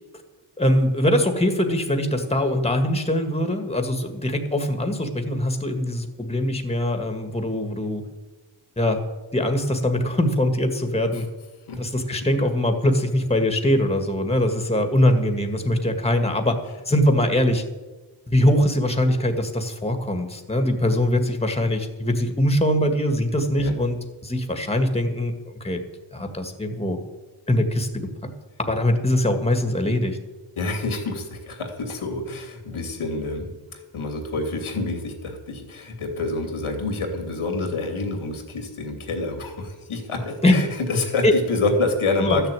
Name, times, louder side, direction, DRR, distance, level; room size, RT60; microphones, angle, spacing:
voice 1, 0.6-8.0 8.8-9.0 9.3-11.3 11.8-16.6 16.9-17.6 18.3-24.0 24.2-25.8 26.1-27.0 27.5-27.9 28.7-30.2 40.4-40.6 41.2-41.3 42.2-42.4, left 1 dB, 10° left, 6 dB, 1.8 m, -22 dB
voice 2, 30.6-33.5 33.9-42.5, left 2 dB, 85° left, 3 dB, 2.8 m, -27 dB
13.0 x 6.8 x 9.0 m, 1.2 s
cardioid pair, 70°, 48 cm